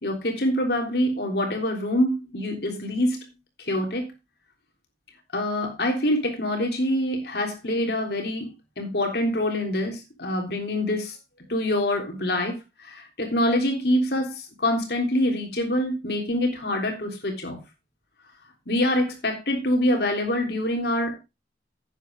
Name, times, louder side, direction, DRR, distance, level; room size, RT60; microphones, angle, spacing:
voice 1, 0.0-3.2 3.6-4.1 5.3-8.5 8.8-11.1 11.5-17.6 18.7-21.2, left 1 dB, 60° left, 3 dB, 3.4 m, -25 dB
11.0 x 9.0 x 3.6 m, 0.24 s
head